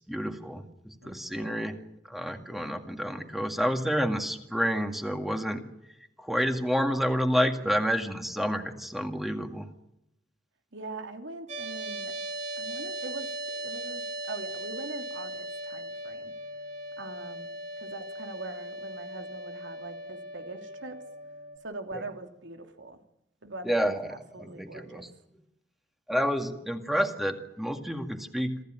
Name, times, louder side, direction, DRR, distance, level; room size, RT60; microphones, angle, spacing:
voice 1, 0.0-1.7 2.1-5.6 6.2-9.7 23.6-25.1 26.1-28.6, equal, ahead, 2.1 m, -29 dB
voice 2, 1.0-1.7 10.7-12.1 12.6-13.3 13.6-16.3 17.0-21.0 21.6-23.0 23.4-25.1, right 2 dB, 90° right, 3.0 m, -42 dB
sound 1, 11.5-21.6, right 1 dB, 40° right, 3.3 m, -38 dB
27.0 x 15.5 x 9.2 m
head